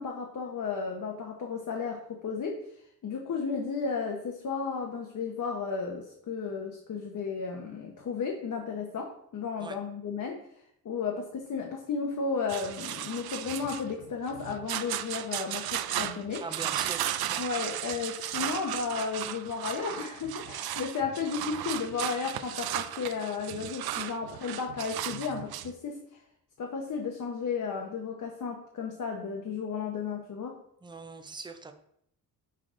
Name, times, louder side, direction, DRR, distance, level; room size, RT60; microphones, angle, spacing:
voice 1, 0.0-2.7 3.0-10.4 10.8-16.5 17.4-26.2 26.6-30.6, left 5 dB, 55° left, 2 dB, 0.9 m, -34 dB
sound 1, 12.5-25.7, right 12 dB, 85° right, 0.5 m, -35 dB
voice 2, 16.4-17.4 30.8-31.7, right 4 dB, 15° right, 7 dB, 0.5 m, -41 dB
5.8 x 4.7 x 3.7 m, 0.71 s
wide cardioid pair, 125°, 36 cm